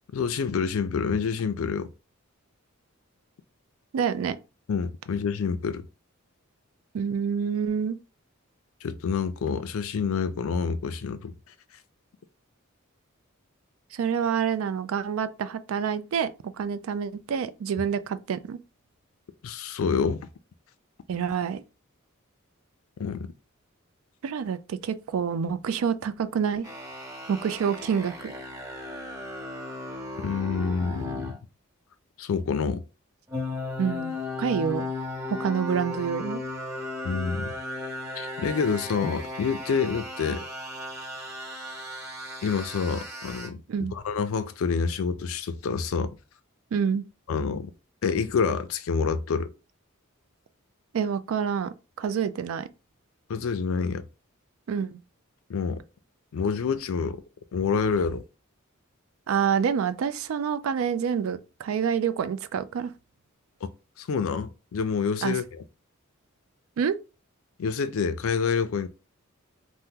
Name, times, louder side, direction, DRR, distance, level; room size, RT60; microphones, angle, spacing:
voice 1, 0.1-1.9 4.7-5.8 8.8-11.3 19.4-20.2 23.0-23.3 30.2-31.3 32.2-32.8 37.0-37.5 38.2-40.4 42.4-43.6 43.9-46.2 47.3-47.7 48.0-49.5 53.3-54.0 55.5-55.8 56.3-57.2 57.5-58.2 64.0-65.6 67.6-68.9, left 5 dB, 70° left, 0.4 m, -27 dB
voice 2, 3.9-4.4 6.9-8.0 13.9-16.3 16.6-18.6 21.1-21.6 24.2-26.7 27.3-28.3 33.8-34.9 35.4-36.4 43.7-43.9 46.7-47.0 50.9-52.7 54.7-55.0 59.3-62.9 65.2-65.4 66.8-67.0, right 7 dB, 70° right, 0.3 m, -27 dB
sound 1, 26.6-31.4 33.3-43.5, left 2 dB, 15° right, 1.0 m, -36 dB
2.8 x 2.1 x 3.5 m
head